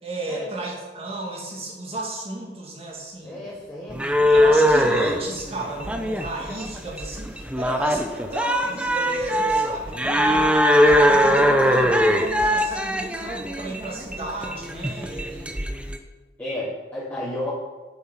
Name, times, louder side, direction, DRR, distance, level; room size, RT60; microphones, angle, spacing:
voice 1, 0.0-3.4 4.3-15.6, right 2 dB, 35° right, -2 dB, 2.3 m, -33 dB
voice 2, 3.2-4.6 16.4-17.5, left 1 dB, 10° left, -12 dB, 3.3 m, -33 dB
sound 1, 3.9-16.0, equal, 5° right, 0.7 m, -21 dB
8.6 x 7.3 x 5.8 m, 1.3 s
head